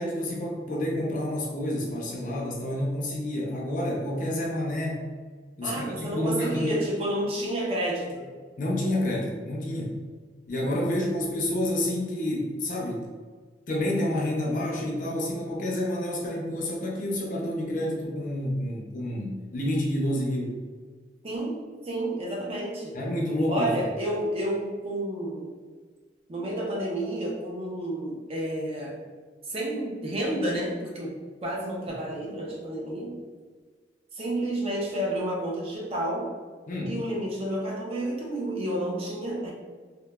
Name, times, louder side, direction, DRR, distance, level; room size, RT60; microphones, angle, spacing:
voice 1, 0.0-5.1 5.6-6.8 8.6-10.0 10.5-13.1 13.7-20.6 22.9-23.7 36.7-37.0, left 1 dB, 45° left, -1 dB, 0.5 m, -29 dB
voice 2, 5.6-8.2 10.6-11.4 21.2-23.0 23.5-25.5 26.3-29.0 29.5-31.2 31.4-33.2 34.1-36.3 36.9-39.5, right 1 dB, 35° right, -3 dB, 0.5 m, -30 dB
2.9 x 2.0 x 2.2 m, 1.5 s
head